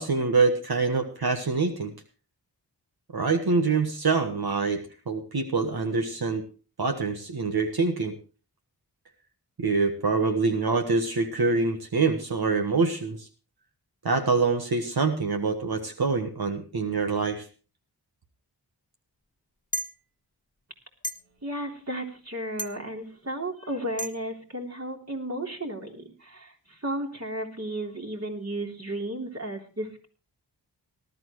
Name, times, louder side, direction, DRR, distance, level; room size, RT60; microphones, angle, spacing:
voice 1, 0.0-1.9 3.1-4.8 5.1-6.4 6.8-8.1 9.6-13.3 14.0-17.5, right 4 dB, 60° right, 5 dB, 1.5 m, -25 dB
sound 1, 19.7-19.9 21.0-21.1 22.6-22.8 24.0-24.1, equal, 20° left, 1.3 m, -31 dB
voice 2, 21.4-30.1, right 1 dB, 35° right, 1 dB, 3.7 m, -34 dB
19.0 x 12.0 x 3.1 m, 0.36 s
cardioid pair, 45°, 42 cm